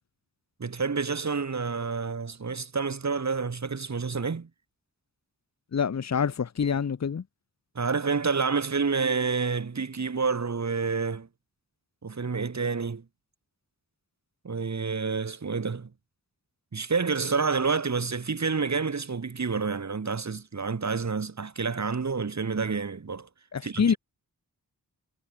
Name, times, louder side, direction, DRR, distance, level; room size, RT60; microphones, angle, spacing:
voice 1, 0.6-4.5 7.7-11.3 12.0-13.0 14.4-15.9 16.7-23.3 23.6-24.0, right 5 dB, 50° right, 5.0 m, -29 dB
voice 2, 5.7-7.2 23.5-23.9, left 6 dB, 50° left, 1.2 m, -26 dB
cardioid pair, 75°, 35 cm